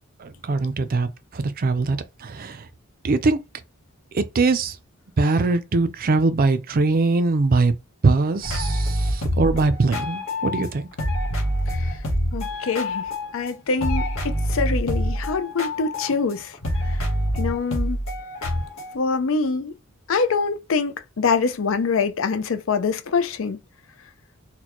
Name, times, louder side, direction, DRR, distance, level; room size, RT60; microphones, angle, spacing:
voice 1, 0.2-2.7 3.0-3.4 4.1-4.8 5.2-7.8 8.0-10.9, right 3 dB, 45° right, 0.5 m, -22 dB
sound 1, 8.4-10.7 11.0-13.5 13.8-18.9, equal, 90° left, 1.4 m, -26 dB
voice 2, 12.3-13.1 13.3-16.6 17.4-18.0 18.9-19.7 20.1-23.6, left 4 dB, 65° left, 0.5 m, -24 dB
4.2 x 2.2 x 3.0 m
head